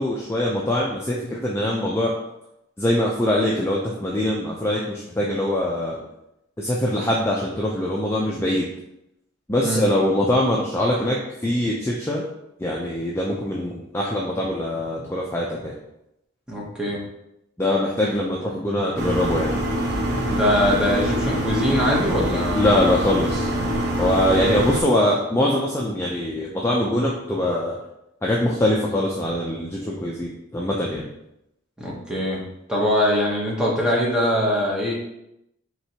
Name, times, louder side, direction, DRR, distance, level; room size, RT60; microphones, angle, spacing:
voice 1, 0.0-2.1 2.8-6.1 6.6-8.7 9.5-12.2 12.6-15.8 17.6-19.5 22.5-23.7 24.0-27.8 28.2-31.1, left 1 dB, 10° left, -4 dB, 0.4 m, -23 dB
voice 2, 16.5-17.0 20.3-22.7 31.8-32.4 32.7-34.9, equal, 5° right, -4 dB, 0.8 m, -22 dB
sound 1, 19.0-24.8, equal, 55° right, 0.8 m, -24 dB
4.5 x 3.2 x 2.8 m, 0.84 s
head